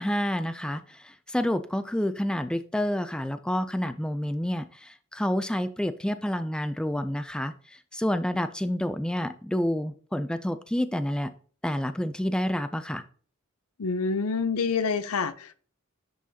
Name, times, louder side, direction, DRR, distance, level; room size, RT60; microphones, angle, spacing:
voice 1, 0.0-11.3 11.6-13.0, left 1 dB, 5° left, 11 dB, 0.3 m, -29 dB
voice 2, 13.8-15.5, left 5 dB, 90° left, 13 dB, 0.6 m, -27 dB
11.0 x 3.9 x 2.8 m, 0.42 s
head